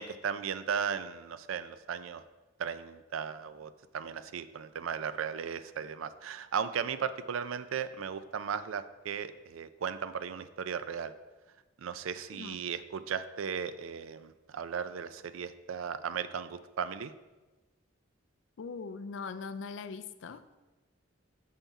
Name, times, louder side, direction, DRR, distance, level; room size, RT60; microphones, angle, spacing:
voice 1, 0.0-2.2 2.6-11.1 11.8-17.1, right 7 dB, 90° right, 12 dB, 0.4 m, -36 dB
voice 2, 18.6-20.6, left 4 dB, 70° left, 11 dB, 0.4 m, -41 dB
7.0 x 5.7 x 4.1 m, 1.2 s
head